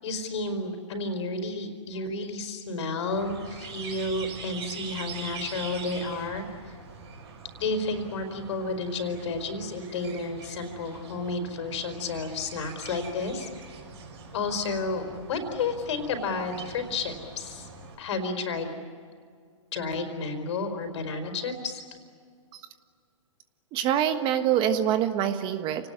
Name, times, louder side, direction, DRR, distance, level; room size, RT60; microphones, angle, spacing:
voice 1, 0.0-6.8 7.6-13.5 14.3-17.7 18.0-18.7 19.7-21.8, left 3 dB, 60° left, 7 dB, 4.6 m, -31 dB
sound 1, 3.1-18.0, right 5 dB, 55° right, 6.6 m, -43 dB
voice 2, 23.7-25.9, right 10 dB, 30° right, 9 dB, 1.4 m, -25 dB
29.0 x 19.5 x 9.9 m, 2.1 s
hypercardioid pair, 130°, 17 cm